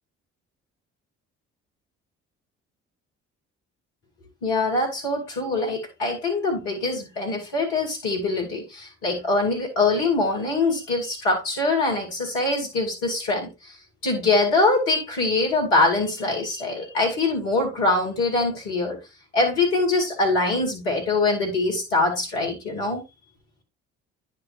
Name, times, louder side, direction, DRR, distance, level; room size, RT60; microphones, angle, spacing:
voice 1, 4.4-13.7 14.0-19.0 19.3-23.0, left 3 dB, 70° left, 2.2 m, -23 dB
9.8 x 5.2 x 2.5 m
figure-of-eight pair, 45°, 38 cm